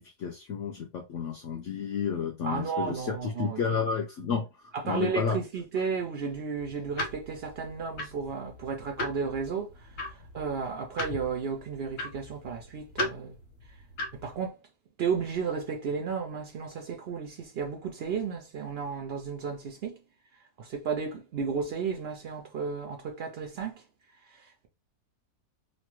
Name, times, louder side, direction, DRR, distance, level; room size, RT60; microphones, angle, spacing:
voice 1, 0.0-5.4 8.0-8.1, left 6 dB, 70° left, 0.7 m, -31 dB
voice 2, 2.4-3.6 4.7-13.4 14.1-14.6 15.0-20.0 20.6-23.8 24.3-24.7, right 6 dB, 85° right, 0.5 m, -33 dB
sound 1, 6.6-14.3, left 2 dB, 55° left, 1.1 m, -38 dB
3.0 x 2.2 x 3.0 m
omnidirectional pair, 1.7 m